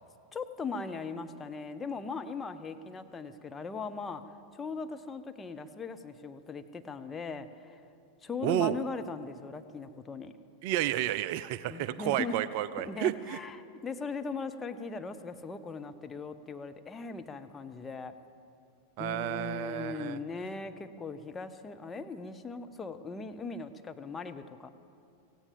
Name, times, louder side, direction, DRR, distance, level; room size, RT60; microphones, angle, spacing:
voice 1, 0.3-4.2 4.5-7.8 8.2-10.3 11.7-12.4 12.8-13.6 13.8-18.1 19.0-24.7, left 4 dB, 15° left, 8 dB, 0.7 m, -39 dB
voice 2, 8.4-8.8 10.6-13.4 19.0-20.2, right 12 dB, 45° right, 16 dB, 0.4 m, -31 dB
17.0 x 16.0 x 5.2 m, 2.5 s
figure-of-eight pair, 90°, 0 cm